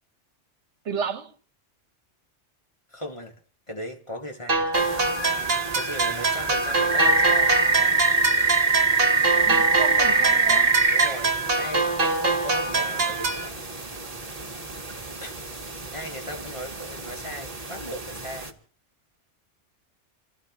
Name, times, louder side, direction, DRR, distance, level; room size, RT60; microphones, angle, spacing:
voice 1, 0.9-1.3 9.5-10.7, right 6 dB, 75° right, 1.3 m, -32 dB
voice 2, 2.9-3.4 3.7-5.0 5.7-7.6 10.9-13.7 15.2-15.4 15.9-18.6, equal, 25° left, 2.1 m, -37 dB
sound 1, 4.5-13.5, right 3 dB, 55° right, 1.5 m, -25 dB
sound 2, 4.7-18.5, right 3 dB, 30° right, 1.7 m, -25 dB
28.0 x 16.0 x 3.1 m
omnidirectional pair, 1.2 m